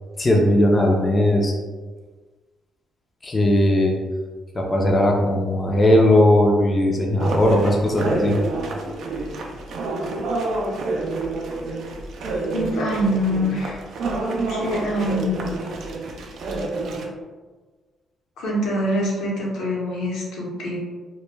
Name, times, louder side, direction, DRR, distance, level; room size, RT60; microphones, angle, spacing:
voice 1, 0.2-1.5 3.2-4.0 4.5-8.3, left 1 dB, 25° left, -1 dB, 0.4 m, -18 dB
sound 1, 7.2-17.1, right 2 dB, 70° right, 0.4 m, -28 dB
voice 2, 12.5-13.8 14.5-15.6 18.4-20.8, equal, 85° left, -4 dB, 0.7 m, -24 dB
2.1 x 2.1 x 3.1 m, 1.4 s
cardioid pair, 90°, 0 cm